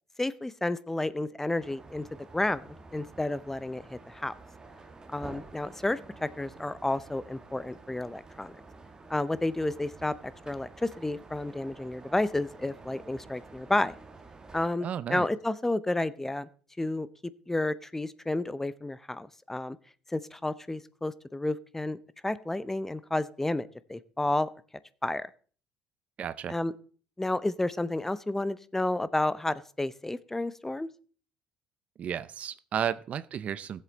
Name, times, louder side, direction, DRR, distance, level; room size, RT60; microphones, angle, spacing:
voice 1, 0.2-2.0 2.3-4.3 5.1-8.5 9.1-13.9 14.5-16.5 16.8-17.1 17.5-19.8 20.1-22.0 22.2-24.5 25.0-25.3 26.5-26.7 27.2-30.9, left 2 dB, 10° left, 0.6 m, -31 dB
sound 1, 1.6-14.7, right 3 dB, 25° right, 1.6 m, -50 dB
voice 2, 14.8-15.3 26.2-26.5 32.0-33.8, right 9 dB, 50° right, 0.6 m, -33 dB
15.0 x 7.6 x 4.0 m
supercardioid pair, 80°, 3 cm